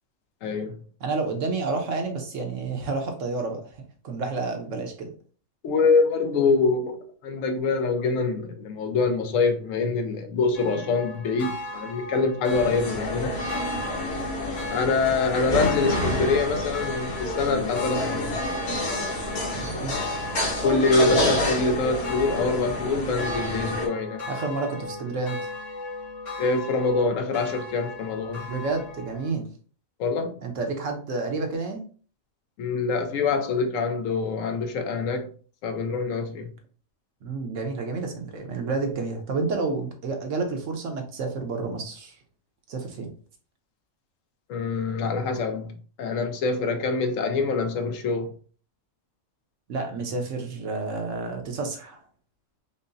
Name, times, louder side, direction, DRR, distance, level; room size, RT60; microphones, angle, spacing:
voice 1, 0.4-0.8 5.6-13.3 14.7-18.4 20.6-24.2 26.4-28.5 30.0-30.4 32.6-35.3 35.6-36.5 44.5-48.3, left 4 dB, 75° left, 0.9 m, -25 dB
voice 2, 1.0-3.7 4.0-5.1 12.6-12.9 19.5-19.9 24.3-25.4 28.5-29.5 30.4-31.8 37.2-42.2 42.7-43.1 49.7-52.0, right 3 dB, 65° right, 1.1 m, -30 dB
sound 1, 10.5-29.3, left 3 dB, 35° left, 0.8 m, -36 dB
sound 2, 12.5-23.9, left 1 dB, 50° left, 1.2 m, -29 dB
5.4 x 2.0 x 2.6 m
omnidirectional pair, 1.4 m